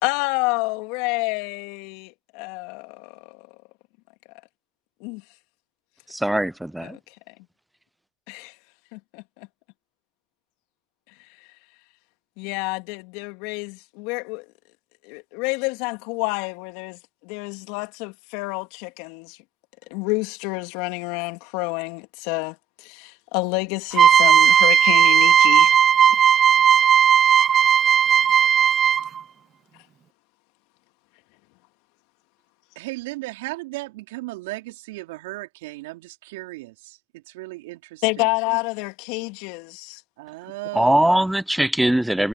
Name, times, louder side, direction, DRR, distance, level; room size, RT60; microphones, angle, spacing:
voice 1, 0.0-3.5 5.0-5.2 6.8-7.0 7.3-7.4 8.3-8.5 8.9-9.5 12.4-14.4 15.0-19.4 19.9-25.8 26.2-26.3 27.2-27.4 38.0-40.0, left 27 dB, 65° left, 2.9 m, -29 dB
voice 2, 6.1-7.0 40.7-42.3, right 1 dB, 5° right, 0.7 m, -21 dB
sound 1, 23.9-29.2, right 8 dB, 40° right, 0.7 m, -16 dB
voice 3, 32.7-38.3 40.2-41.2, right 21 dB, 75° right, 4.0 m, -36 dB
hypercardioid pair, 75°, 0 cm